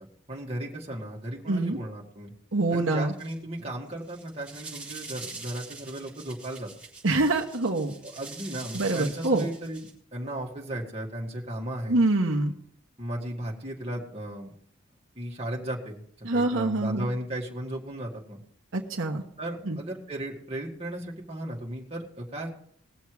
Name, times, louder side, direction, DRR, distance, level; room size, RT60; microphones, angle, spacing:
voice 1, 0.3-2.3 2.7-6.7 8.0-9.9 10.1-12.0 13.0-14.5 15.2-18.4 19.4-22.5, right 1 dB, 30° right, -2 dB, 2.1 m, -35 dB
voice 2, 2.5-3.1 7.0-7.9 8.7-9.5 11.9-12.5 16.2-17.1 18.7-19.2 19.6-19.8, right 2 dB, 75° right, 1 dB, 1.2 m, -25 dB
sound 1, 2.7-2.9 3.2-3.6 4.0-9.9, right 3 dB, 5° right, 4.1 m, -44 dB
19.5 x 7.2 x 4.8 m, 0.65 s
head